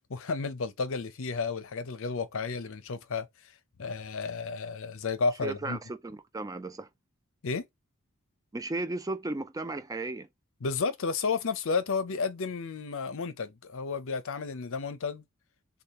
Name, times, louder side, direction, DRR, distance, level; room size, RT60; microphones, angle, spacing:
voice 1, 0.1-3.3 3.8-5.8 7.4-7.7 10.6-15.2, left 4 dB, 65° left, 0.6 m, -32 dB
voice 2, 5.4-6.9 8.5-10.3, right 2 dB, 15° right, 0.4 m, -35 dB
6.6 x 2.3 x 2.9 m
head